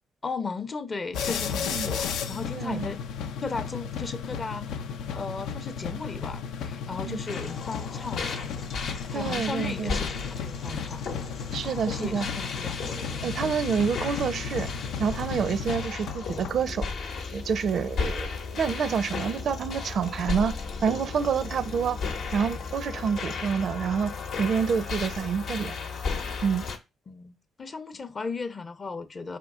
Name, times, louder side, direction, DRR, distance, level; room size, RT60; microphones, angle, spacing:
voice 1, 0.2-3.0 3.4-8.7 9.1-11.1 11.9-13.7 27.1-29.4, left 4 dB, 35° left, 0.6 m, -36 dB
sound 1, 1.1-16.5, left 6 dB, 90° left, 0.4 m, -34 dB
voice 2, 2.6-2.9 7.0-7.2 9.1-10.0 11.5-12.3 13.2-14.7 15.0-16.8 17.3-20.5 20.8-22.0 22.3-24.1 24.4-25.7 26.4-26.7, right 6 dB, 60° right, 0.4 m, -27 dB
sound 2, 7.3-26.8, left 5 dB, 70° left, 0.9 m, -35 dB
5.1 x 2.9 x 3.6 m
cardioid pair, 90°, 0 cm